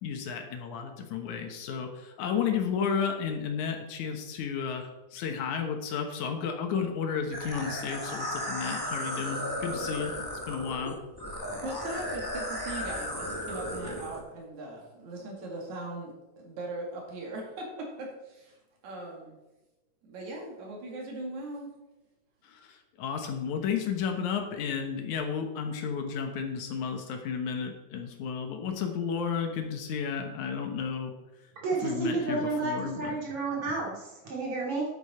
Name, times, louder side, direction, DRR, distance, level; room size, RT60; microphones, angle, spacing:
voice 1, 0.0-10.2 10.5-11.0 22.4-31.1 31.8-33.2, left 6 dB, 80° left, 4 dB, 2.6 m, -32 dB
sound 1, 7.3-14.2, equal, 10° left, 1.1 m, -35 dB
voice 2, 11.6-18.6 18.8-19.4 20.0-21.7, right 2 dB, 75° right, -1 dB, 3.5 m, -39 dB
voice 3, 31.6-34.9, right 3 dB, 50° right, -3 dB, 3.4 m, -31 dB
10.0 x 8.5 x 4.3 m, 1.0 s
omnidirectional pair, 3.3 m